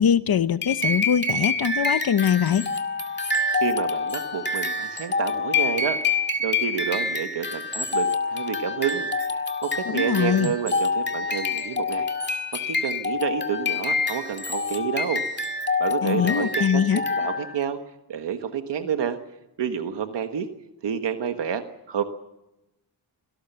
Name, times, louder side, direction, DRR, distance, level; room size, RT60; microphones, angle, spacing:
voice 1, 0.0-2.7 9.9-10.6 16.0-17.0, left 8 dB, 60° left, 0.9 m, -22 dB
sound 1, 0.6-17.6, left 3 dB, 25° left, 2.1 m, -27 dB
voice 2, 3.6-12.1 12.7-15.2 15.8-17.8 18.1-19.2 19.6-20.5 20.8-22.0, right 8 dB, 90° right, 1.5 m, -29 dB
26.0 x 18.5 x 6.9 m
wide cardioid pair, 110°, 41 cm